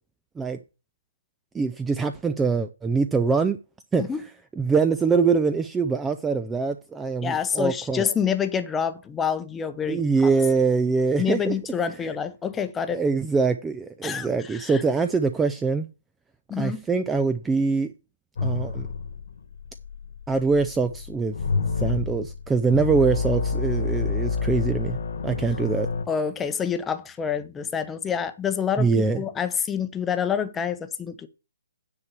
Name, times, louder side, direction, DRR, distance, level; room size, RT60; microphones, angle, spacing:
voice 1, 1.5-3.6 3.9-4.1 4.6-8.0 9.8-11.5 12.0-12.1 12.9-15.9 16.6-17.9 18.4-18.9 20.3-21.3 21.8-25.0 25.2-25.9 28.8-29.2, right 4 dB, 10° right, 0.5 m, -23 dB
voice 2, 7.2-10.3 11.2-13.0 14.0-14.8 16.5-16.8 26.1-28.9 29.2-31.3, left 7 dB, 10° left, 0.8 m, -27 dB
sound 1, 18.4-26.0, left 4 dB, 65° left, 1.5 m, -28 dB
9.6 x 4.4 x 7.2 m
hypercardioid pair, 150°, 0 cm